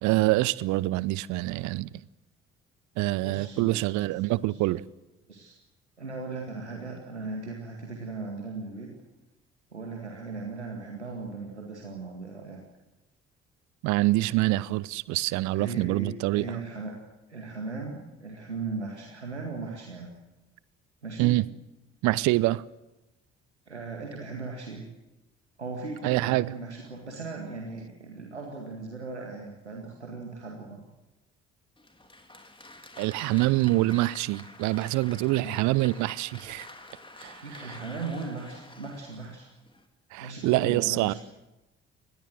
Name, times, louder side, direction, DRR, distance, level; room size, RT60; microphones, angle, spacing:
voice 1, 0.0-1.9 3.0-4.8 13.8-16.6 21.2-21.5 22.0-22.6 26.0-26.5 33.0-36.7 37.2-37.8 40.1-41.1, right 19 dB, 60° right, 0.8 m, -25 dB
voice 2, 3.1-3.9 4.5-4.6 5.3-5.5 6.0-8.9 9.7-12.6 15.5-16.9 17.3-20.1 21.0-21.4 23.7-24.8 25.6-30.8 35.4-35.6 37.4-39.5 40.2-41.1, right 3 dB, 90° right, 2.1 m, -38 dB
Applause, 31.8-39.9, left 2 dB, 15° left, 3.5 m, -48 dB
25.5 x 20.0 x 7.9 m
figure-of-eight pair, 50°, 33 cm